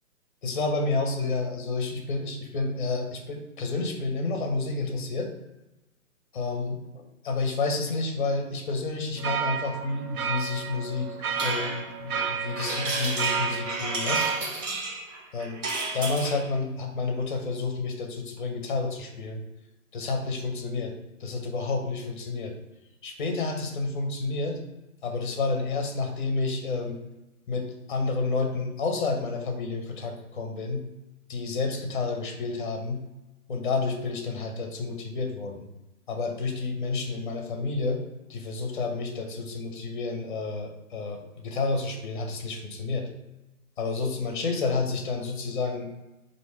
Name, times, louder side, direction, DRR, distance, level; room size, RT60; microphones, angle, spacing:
voice 1, 0.4-5.3 6.3-6.8 7.2-14.4 15.3-15.6 15.9-19.4 19.9-20.9 21.2-22.5 23.0-24.6 25.0-27.0 27.5-30.8 31.3-33.0 33.5-35.7 36.1-38.0 38.3-43.1 43.8-45.9, left 3 dB, 35° left, 3 dB, 0.7 m, -30 dB
sound 1, 9.2-14.4, right 7 dB, 75° right, 0.6 m, -31 dB
sound 2, 11.4-16.5, right 3 dB, 55° right, 1.0 m, -32 dB
3.2 x 2.6 x 4.3 m, 1.0 s
hypercardioid pair, 145°, 44 cm